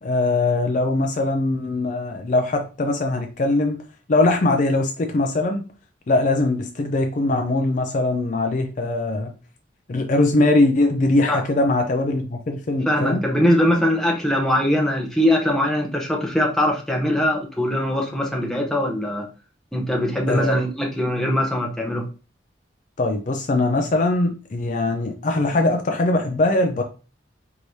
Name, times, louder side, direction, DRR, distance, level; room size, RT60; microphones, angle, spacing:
voice 1, 0.0-3.8 4.1-5.6 6.1-9.3 9.9-13.2 20.3-20.6 23.0-26.8, left 2 dB, 40° left, 5 dB, 0.4 m, -21 dB
voice 2, 12.9-19.3 19.7-22.0, left 1 dB, ahead, -1 dB, 0.7 m, -21 dB
4.7 x 3.1 x 2.7 m, 0.35 s
head